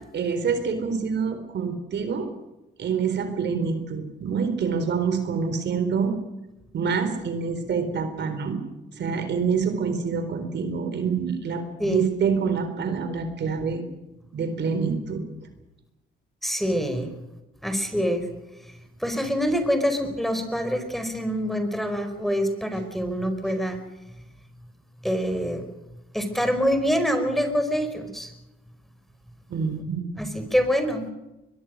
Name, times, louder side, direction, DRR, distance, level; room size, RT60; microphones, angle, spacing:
voice 1, 0.1-2.3 2.8-6.1 6.7-8.6 8.9-13.8 14.3-15.2 29.5-30.1, right 5 dB, 60° right, 8 dB, 4.1 m, -26 dB
voice 2, 16.4-17.1 17.6-18.2 18.7-18.8 19.0-23.8 25.0-25.7 26.1-28.3 30.2-31.1, equal, ahead, 8 dB, 4.8 m, -25 dB
22.5 x 22.5 x 6.5 m, 0.96 s
cardioid pair, 90°, 20 cm